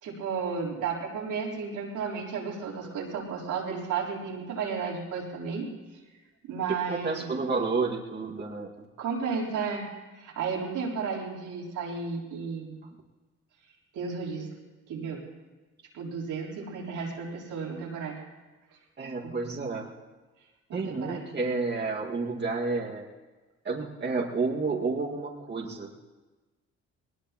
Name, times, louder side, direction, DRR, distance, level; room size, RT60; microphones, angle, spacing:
voice 1, 0.0-5.7 6.4-7.3 9.0-9.8 10.2-12.8 13.9-14.5 14.9-15.2 15.9-18.2 19.2-19.3 20.7-21.3, right 5 dB, 90° right, -4 dB, 3.8 m, -33 dB
voice 2, 6.7-8.9 19.0-19.9 20.7-23.1 23.6-25.9, right 4 dB, 35° right, -3 dB, 1.9 m, -30 dB
21.5 x 19.0 x 3.0 m, 1.2 s
cardioid pair, 90°, 30 cm